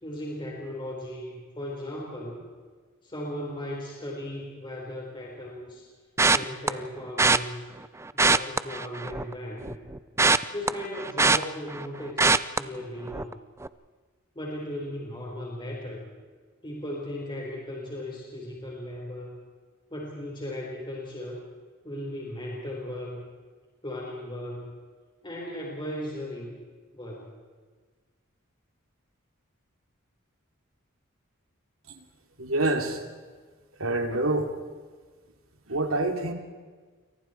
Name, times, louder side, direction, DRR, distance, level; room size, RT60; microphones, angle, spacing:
voice 1, 0.0-2.4 3.0-5.9 6.3-7.7 8.1-9.7 10.5-13.4 14.3-16.0 16.6-19.4 19.9-21.4 21.8-23.2 23.8-24.7 25.2-26.5 26.9-27.3, left 1 dB, 25° left, -3 dB, 4.8 m, -37 dB
sound 1, 6.2-6.7 7.2-7.4 8.1-9.3 9.6-11.9 12.2-12.6 13.1-13.3 13.6-13.7, right 3 dB, 15° right, 0.5 m, -22 dB
voice 2, 32.4-33.0 33.8-34.5 35.7-36.3, right 2 dB, 80° right, 4 dB, 3.0 m, -26 dB
29.0 x 24.0 x 4.6 m, 1.4 s
head